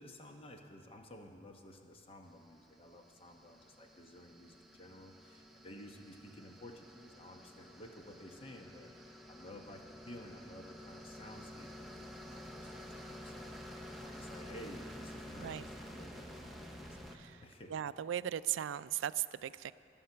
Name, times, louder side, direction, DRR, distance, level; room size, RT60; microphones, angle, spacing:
voice 1, 0.0-16.6 16.9-17.9, left 1 dB, 30° left, 3 dB, 0.9 m, -53 dB
sound 1, 2.5-17.2, equal, ahead, 0.7 m, -50 dB
voice 2, 17.7-19.7, right 11 dB, 90° right, 16 dB, 0.3 m, -37 dB
20.0 x 7.4 x 5.7 m, 2.6 s
head